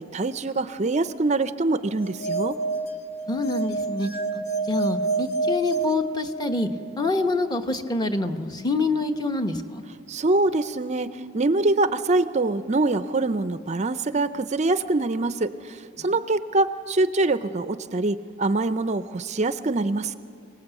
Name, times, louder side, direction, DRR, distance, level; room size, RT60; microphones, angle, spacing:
voice 1, 0.0-2.6 10.1-11.1 11.3-20.2, right 2 dB, 35° right, 12 dB, 0.5 m, -24 dB
sound 1, 2.0-6.8, right 3 dB, 50° left, 1.2 m, -28 dB
voice 2, 3.3-4.1 4.7-6.7 7.0-9.8 16.0-16.1, left 2 dB, 20° left, 6 dB, 1.0 m, -26 dB
26.0 x 18.5 x 8.2 m, 2.4 s
head